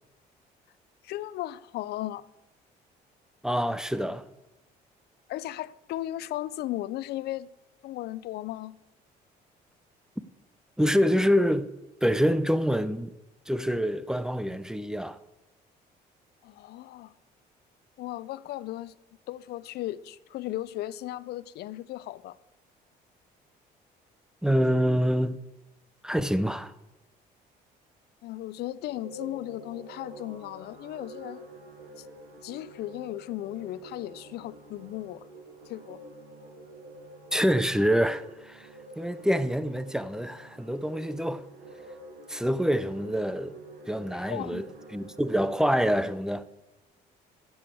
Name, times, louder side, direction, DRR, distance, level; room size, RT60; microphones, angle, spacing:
voice 1, 1.0-2.2 5.3-7.5 7.8-8.8 16.4-17.1 18.0-18.9 19.3-22.4 28.2-31.4 32.0-32.1 32.4-35.3 35.7-36.0 44.2-44.6, left 14 dB, 75° left, 0.5 m, -36 dB
voice 2, 3.4-4.2 10.8-11.7 12.0-13.1 13.5-15.2 24.4-25.4 26.0-26.7 37.3-38.7 39.0-41.4 42.3-43.5 43.9-44.7 44.9-46.4, equal, 5° right, 0.6 m, -26 dB
sound 1, 28.8-45.9, right 1 dB, 80° right, 4.6 m, -48 dB
15.5 x 7.1 x 8.3 m
cardioid pair, 110°, 17 cm